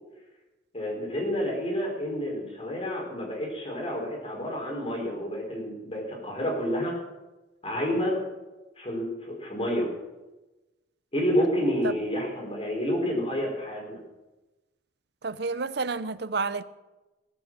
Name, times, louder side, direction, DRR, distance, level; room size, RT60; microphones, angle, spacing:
voice 1, 0.7-7.0 7.6-8.2 8.8-9.9 11.1-14.0, equal, 30° left, 4.6 m, -29 dB
voice 2, 15.2-16.6, right 4 dB, 65° right, 0.7 m, -30 dB
19.5 x 8.6 x 7.5 m
head